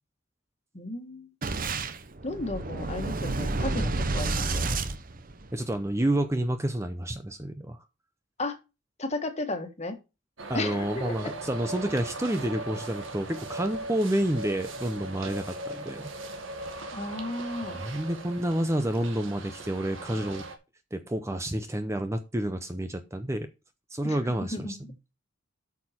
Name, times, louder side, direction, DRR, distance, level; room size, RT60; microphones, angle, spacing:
voice 1, 0.7-1.3 2.2-4.7 8.4-8.6 9.0-10.0 10.5-11.3 16.9-17.8 24.0-24.9, left 2 dB, 35° left, 6 dB, 1.6 m, -34 dB
Boom, 1.4-5.8, right 3 dB, 45° right, 0.8 m, -30 dB
voice 2, 5.5-7.8 10.5-16.1 17.7-20.4 20.9-23.5 23.9-24.8, right 1 dB, 15° right, 8 dB, 0.6 m, -29 dB
sound 1, 10.4-20.6, right 2 dB, 80° right, 1.9 m, -39 dB
8.2 x 6.6 x 4.3 m, 0.28 s
head